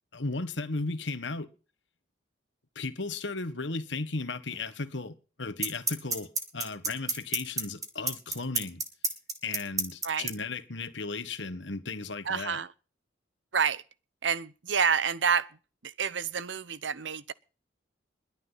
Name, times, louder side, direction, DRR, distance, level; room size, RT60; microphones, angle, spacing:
voice 1, 0.1-1.5 2.7-8.8 9.4-12.6, left 3 dB, 75° left, 1.6 m, -35 dB
sound 1, 4.5-4.6 5.6-10.3, right 4 dB, 20° right, 2.4 m, -28 dB
voice 2, 12.3-12.7 13.5-13.8 14.2-15.5 15.8-17.3, right 6 dB, 75° right, 0.8 m, -28 dB
21.5 x 10.0 x 4.1 m
head